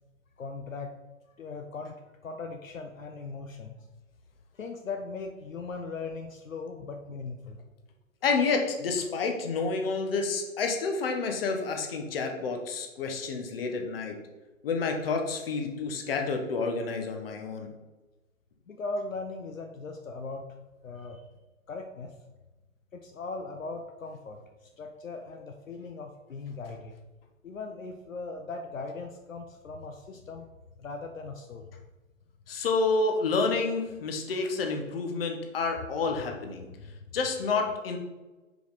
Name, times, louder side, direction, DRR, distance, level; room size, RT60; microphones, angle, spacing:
voice 1, 0.4-0.9 1.4-3.9 4.5-7.6 18.7-20.5 20.8-21.2 21.7-22.1 22.9-26.9 27.4-30.5 30.8-31.7 36.8-37.0, left 3 dB, 70° left, 4 dB, 0.7 m, -39 dB
voice 2, 8.2-14.2 14.6-17.7 32.5-36.7 37.1-38.0, left 4 dB, 45° left, 3 dB, 1.1 m, -29 dB
5.0 x 4.9 x 4.0 m, 1.1 s
figure-of-eight pair, 125°, 41 cm